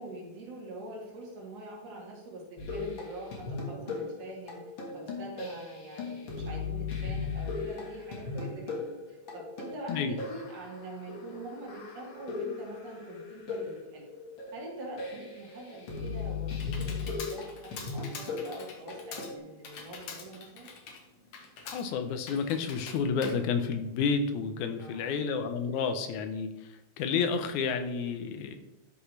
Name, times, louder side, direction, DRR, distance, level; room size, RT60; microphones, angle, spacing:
voice 1, 0.0-4.6 4.9-14.1 14.5-20.7 24.8-25.1, right 1 dB, 85° right, -3 dB, 3.6 m, -44 dB
sound 1, 2.6-19.4, left 4 dB, 50° left, 1.9 m, -38 dB
Computer keyboard, 15.8-24.4, left 5 dB, 70° left, 2.2 m, -46 dB
voice 2, 21.7-26.5 27.0-28.6, left 5 dB, 85° left, 8 dB, 2.2 m, -30 dB
11.5 x 5.8 x 3.2 m, 0.95 s
omnidirectional pair, 3.4 m